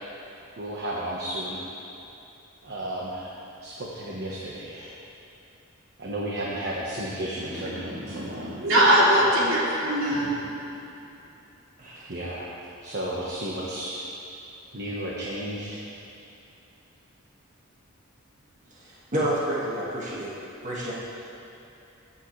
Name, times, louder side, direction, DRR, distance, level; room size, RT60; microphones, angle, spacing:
voice 1, 0.6-1.6 2.6-3.3 3.6-4.9 6.0-8.6 12.1-12.5 12.8-14.0 14.7-15.8, right 1 dB, 50° right, -4 dB, 1.4 m, -33 dB
voice 2, 7.4-10.4, equal, 70° right, -6 dB, 3.0 m, -22 dB
voice 3, 11.8-12.1 18.7-20.3 20.6-20.9, right 1 dB, 35° right, -7 dB, 1.9 m, -29 dB
22.5 x 8.8 x 3.3 m, 2.8 s
head